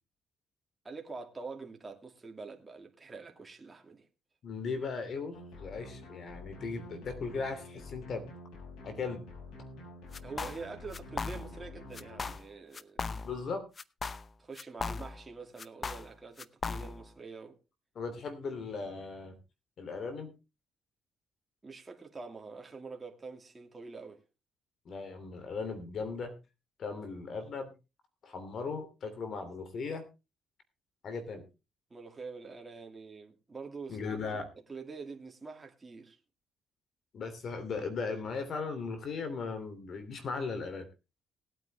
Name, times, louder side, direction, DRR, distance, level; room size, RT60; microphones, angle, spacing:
voice 1, 0.8-4.1 10.2-13.2 14.4-17.6 21.6-24.2 31.9-34.0 34.3-34.4 34.7-36.2, right 4 dB, 25° right, 2.3 m, -45 dB
voice 2, 4.4-8.2 8.8-9.2 13.2-13.6 17.9-19.4 19.8-20.3 24.8-26.3 26.8-27.7 28.2-30.0 31.0-31.4 33.9-34.5 37.1-40.9, left 4 dB, 60° left, 2.9 m, -37 dB
sound 1, 5.3-12.3, left 2 dB, 90° left, 6.1 m, -48 dB
sound 2, 10.1-10.7 10.9-11.7 11.9-12.5 12.7-13.5 13.8-15.3 15.6-17.1, left 4 dB, 35° left, 0.7 m, -38 dB
19.0 x 9.0 x 3.4 m
cardioid pair, 90°, 0 cm